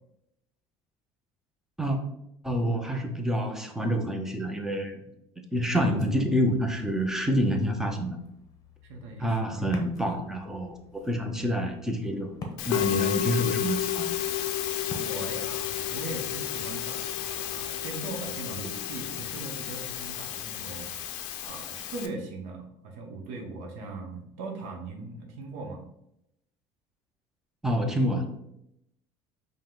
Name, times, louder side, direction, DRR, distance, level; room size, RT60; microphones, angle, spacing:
voice 1, 2.4-5.1 5.5-8.2 9.2-12.3 12.6-14.1 27.6-28.3, equal, 5° right, 4 dB, 0.5 m, -27 dB
Ocean, 5.7-16.8, left 3 dB, 30° left, 0.7 m, -47 dB
voice 2, 8.8-9.8 14.9-20.9 21.4-25.8, right 3 dB, 70° right, 0 dB, 0.8 m, -40 dB
Musical instrument, 12.6-22.1, left 11 dB, 85° left, 0.5 m, -31 dB
5.4 x 2.1 x 3.7 m, 0.80 s
cardioid pair, 155°, 12 cm